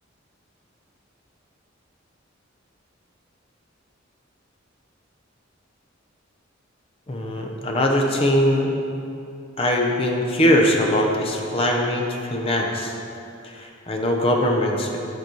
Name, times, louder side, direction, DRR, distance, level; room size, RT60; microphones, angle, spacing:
voice 1, 7.1-8.7 9.6-12.9 13.4-15.0, left 1 dB, 30° left, 1 dB, 0.6 m, -21 dB
7.7 x 4.7 x 4.5 m, 2.7 s
head